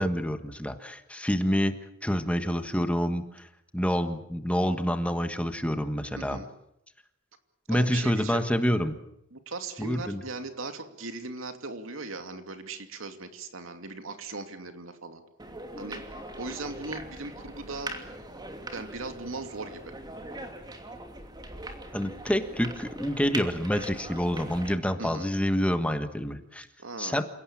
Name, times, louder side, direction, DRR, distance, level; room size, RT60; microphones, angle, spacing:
voice 1, 0.0-1.7 2.0-3.5 3.7-6.4 7.7-8.9 9.8-10.2 21.9-26.7 27.0-27.2, equal, 5° left, 8 dB, 1.4 m, -27 dB
voice 2, 6.2-6.5 7.7-8.4 9.3-15.2 15.8-16.0 16.4-18.0 18.7-19.9 25.0-25.3 26.8-27.2, right 3 dB, 80° right, 7 dB, 2.7 m, -38 dB
sound 1, 15.4-24.7, right 2 dB, 20° right, 2.8 m, -41 dB
28.5 x 17.5 x 8.7 m, 0.80 s
head